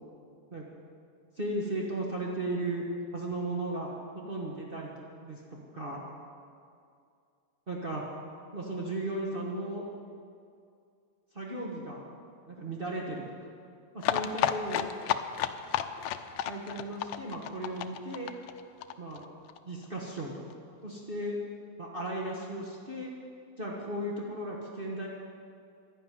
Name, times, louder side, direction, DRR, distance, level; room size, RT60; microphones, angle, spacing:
voice 1, 1.4-2.8 3.1-3.9 4.1-6.0 7.7-8.0 8.5-9.8 11.3-12.0 12.5-13.2 13.9-14.8 16.5-18.3 19.0-19.2 19.6-20.3 20.8-21.4 21.8-23.1 23.6-25.1, right 1 dB, 80° right, -3 dB, 0.5 m, -36 dB
sound 1, 14.0-19.6 19.8-19.9 20.2-20.3 20.5-20.6, left 10 dB, 80° left, 1.6 m, -31 dB
12.0 x 11.5 x 9.3 m, 2.4 s
omnidirectional pair, 3.7 m